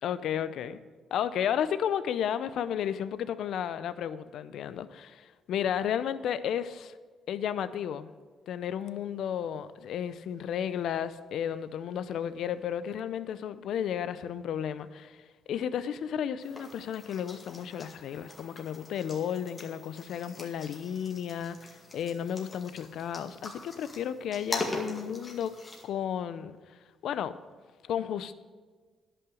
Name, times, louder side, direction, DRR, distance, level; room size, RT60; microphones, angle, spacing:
voice 1, 0.0-0.8 1.1-7.0 7.3-8.1 8.5-15.2 15.5-25.5 25.8-26.5 27.0-27.3 27.8-28.3, left 9 dB, 75° left, 14 dB, 0.5 m, -33 dB
sound 1, 16.4-25.8, left 2 dB, 30° left, 2.2 m, -42 dB
10.5 x 5.8 x 7.7 m, 1.5 s
cardioid pair, 90°, 0 cm